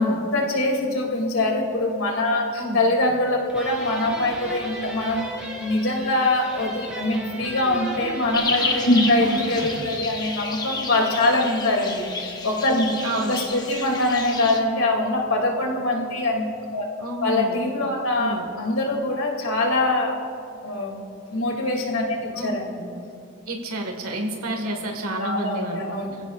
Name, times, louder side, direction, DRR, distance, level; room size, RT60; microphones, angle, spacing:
voice 1, 0.0-5.3 5.6-12.9 13.3-16.5 16.7-16.9 17.2-20.2 20.6-21.0 21.3-22.8 25.2-26.1, left 2 dB, 65° left, 0 dB, 2.6 m, -23 dB
sound 1, 3.5-9.9, equal, 5° right, 3.4 m, -35 dB
sound 2, 8.3-14.6, left 3 dB, 20° left, 1.0 m, -31 dB
voice 2, 13.0-13.4 17.0-17.6 18.2-18.4 22.3-22.6 23.5-26.0, right 1 dB, 75° right, 2 dB, 1.7 m, -29 dB
25.5 x 15.5 x 2.4 m, 2.6 s
head